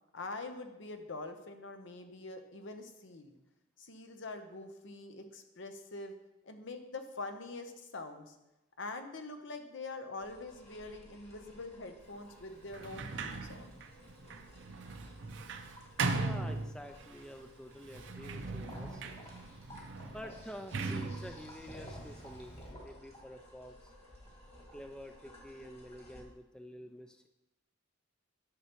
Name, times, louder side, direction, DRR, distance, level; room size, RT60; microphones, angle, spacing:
voice 1, 0.1-3.3 3.8-6.1 6.4-8.3 8.8-13.8, left 3 dB, 65° left, 7 dB, 0.8 m, -44 dB
sound 1, 10.2-26.2, equal, 30° left, 2.0 m, -54 dB
Sliding door, 12.7-17.2 17.8-22.7, right 3 dB, 65° right, 0.6 m, -39 dB
voice 2, 16.1-19.0 20.1-23.9 24.7-27.3, equal, 5° left, 5 dB, 0.3 m, -49 dB
9.8 x 6.7 x 3.0 m, 0.94 s
head